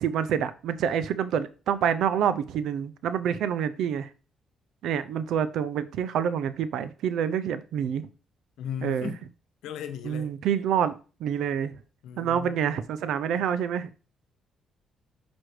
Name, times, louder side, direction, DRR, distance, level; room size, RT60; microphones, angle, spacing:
voice 1, 0.0-4.1 4.8-8.1 8.8-9.1 10.0-11.7 12.2-13.9, right 8 dB, 80° right, 0.6 m, -27 dB
voice 2, 8.6-9.2 9.6-10.3 12.0-12.8, left 8 dB, 85° left, 1.0 m, -36 dB
6.1 x 6.1 x 3.3 m
cardioid pair, 90°, 0 cm